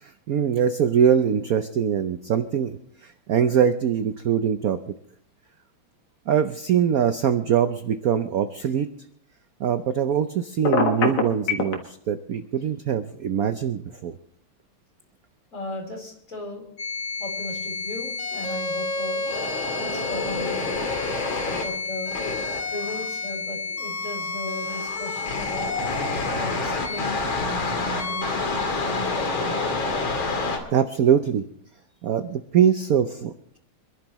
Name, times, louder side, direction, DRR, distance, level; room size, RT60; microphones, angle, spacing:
voice 1, 0.0-4.8 6.3-8.9 9.6-14.1 30.7-31.4 32.0-33.6, right 8 dB, 70° right, 9 dB, 0.8 m, -23 dB
Telephone, 10.6-11.8, left 4 dB, 90° left, 2.5 m, -21 dB
voice 2, 15.5-16.7 17.2-19.2 19.8-20.7 21.5-22.2 22.7-25.7 26.3-29.7, left 2 dB, 35° left, -1 dB, 4.6 m, -36 dB
sound 1, 16.8-30.6, left 3 dB, 70° left, 3.1 m, -28 dB
26.5 x 11.5 x 3.1 m, 0.65 s
omnidirectional pair, 2.3 m